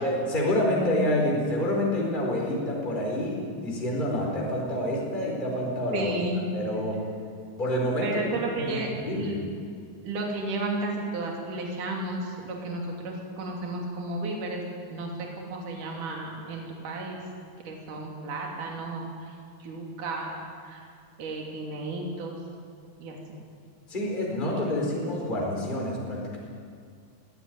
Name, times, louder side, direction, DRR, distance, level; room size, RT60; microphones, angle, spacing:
voice 1, 0.0-6.1 6.5-7.1 7.6-8.2 8.6-9.4 23.9-26.4, left 1 dB, 10° left, -2 dB, 4.5 m, -27 dB
voice 2, 5.9-6.4 8.0-9.3 10.0-14.6 14.9-17.2 17.6-19.3 19.6-20.8 21.2-22.4 23.0-23.2, right 2 dB, 55° right, 0 dB, 4.4 m, -33 dB
21.0 x 16.5 x 9.5 m, 2.3 s
omnidirectional pair, 4.3 m